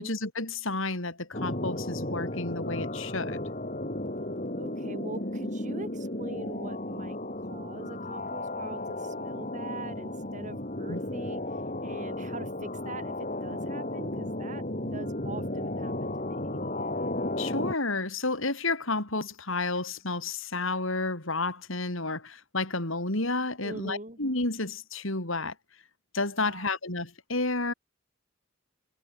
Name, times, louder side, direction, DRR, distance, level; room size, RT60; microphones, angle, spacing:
voice 1, 0.0-3.4 10.9-11.0 17.4-25.5 26.1-27.7, left 3 dB, 70° left, 4.3 m, -31 dB
sound 1, 1.3-17.7, left 1 dB, 35° left, 3.1 m, -34 dB
voice 2, 4.5-11.4 11.8-16.6 23.6-24.2 26.4-26.8, right 2 dB, 35° right, 5.2 m, -43 dB
head